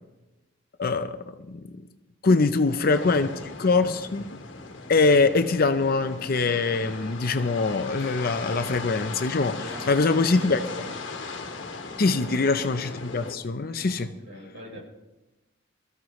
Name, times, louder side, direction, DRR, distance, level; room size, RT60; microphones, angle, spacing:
voice 1, 0.8-1.8 2.2-3.3 3.6-4.4 4.9-10.6 12.0-14.1, left 3 dB, 50° left, 9 dB, 0.6 m, -23 dB
voice 2, 2.3-3.5 9.4-11.0 12.0-12.5 13.7-14.8, equal, 85° right, -1 dB, 4.5 m, -42 dB
sound 1, 2.9-13.4, left 3 dB, 80° left, 1.4 m, -38 dB
21.5 x 14.5 x 3.2 m, 1.0 s
head